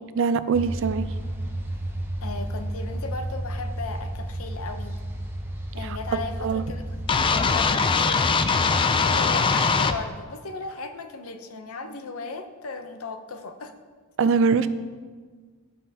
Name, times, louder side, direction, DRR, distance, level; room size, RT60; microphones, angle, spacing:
voice 1, 0.2-1.1 5.8-6.6 14.2-14.7, right 5 dB, 65° right, 13 dB, 0.4 m, -23 dB
sound 1, 0.5-7.6, right 1 dB, 10° right, 0.6 m, -32 dB
voice 2, 2.2-5.0 5.7-6.8 7.2-13.7, left 3 dB, 85° left, 7 dB, 0.7 m, -36 dB
sound 2, 7.1-10.0, left 4 dB, 25° left, 0.3 m, -21 dB
13.5 x 5.4 x 2.8 m, 1.5 s
head